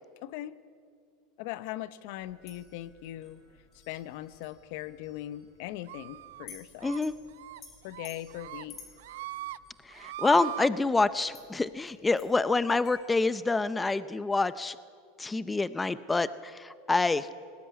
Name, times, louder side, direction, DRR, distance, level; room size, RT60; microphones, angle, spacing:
voice 1, 0.2-0.6 1.4-3.4 3.9-6.9 7.8-8.8, left 14 dB, 65° left, 16 dB, 1.0 m, -40 dB
sound 1, 2.2-13.0, left 5 dB, 30° left, 6.1 m, -55 dB
sound 2, 5.9-6.5 6.8-7.0 7.3-7.6 7.9-8.6 9.0-9.6 9.9-10.7, right 14 dB, 85° right, 0.6 m, -40 dB
voice 2, 6.8-7.1 9.9-14.8 15.2-17.3, left 3 dB, 10° left, 15 dB, 0.6 m, -27 dB
24.5 x 19.0 x 9.6 m, 2.2 s
supercardioid pair, 145°, 0 cm